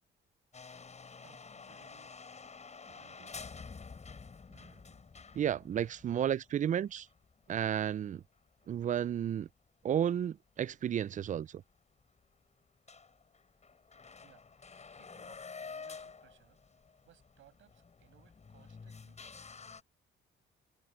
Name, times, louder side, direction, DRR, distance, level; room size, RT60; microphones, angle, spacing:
sound 1, 0.5-8.7 9.0-9.1 9.7-9.8 10.7-10.8 11.0-11.1 11.5-11.6 12.0-12.3 12.6-12.7 12.9-19.8, left 5 dB, 35° left, 6.7 m, -50 dB
voice 1, 1.2-2.2 2.9-3.4 14.2-14.4 14.7-16.6 17.1-19.2, right 12 dB, 80° right, 6.9 m, -65 dB
voice 2, 5.4-7.1 7.5-8.2 8.7-9.5 9.8-11.5, right 9 dB, 40° right, 0.4 m, -32 dB
cardioid pair, 90°, 20 cm